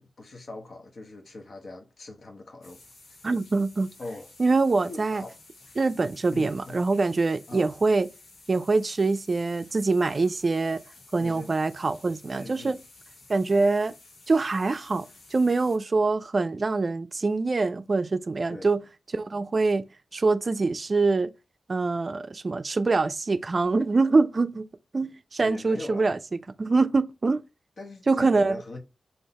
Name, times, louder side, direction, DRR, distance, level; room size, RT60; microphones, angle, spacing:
voice 1, 0.0-2.8 4.0-4.3 4.8-5.3 6.3-6.8 7.5-7.8 11.2-11.5 12.3-12.8 18.5-18.7 25.4-26.1 27.8-28.8, left 2 dB, 65° left, 1.0 m, -41 dB
sound 1, 2.6-15.8, left 2 dB, 85° left, 1.3 m, -53 dB
voice 2, 3.2-3.9 4.4-5.2 5.8-8.1 8.5-10.8 11.1-12.8 13.3-14.0 14.3-18.8 19.1-19.8 20.1-21.3 21.7-24.7 24.9-26.2 26.6-27.4 28.1-28.6, right 3 dB, 50° right, 0.3 m, -24 dB
3.9 x 2.8 x 4.1 m
cardioid pair, 45°, 0 cm